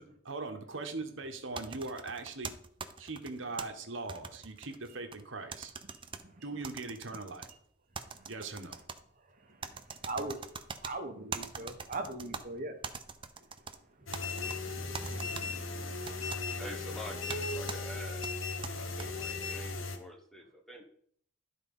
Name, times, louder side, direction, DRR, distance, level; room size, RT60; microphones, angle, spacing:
voice 1, 0.0-2.5 3.0-5.7 6.4-7.5 8.3-8.8, right 3 dB, 70° right, 5 dB, 1.2 m, -40 dB
sound 1, 1.6-3.7 4.1-5.2 5.5-6.2 6.6-7.5 7.9-9.0 9.6-10.9 11.3-12.4 12.8-13.8 14.1-14.6 14.9-15.5 16.1-16.4 17.3-17.4 17.7-17.8 18.2-19.1, right 5 dB, 25° right, 0.6 m, -42 dB
voice 2, 9.3-10.4 10.8-12.8 13.4-13.5 14.0-16.6, right 2 dB, 45° right, 6 dB, 1.1 m, -42 dB
sound 2, 14.1-20.0, left 3 dB, 85° left, 1.2 m, -37 dB
voice 3, 16.6-18.3 18.7-20.8, equal, ahead, 1 dB, 1.3 m, -47 dB
12.0 x 4.1 x 5.4 m, 0.63 s
head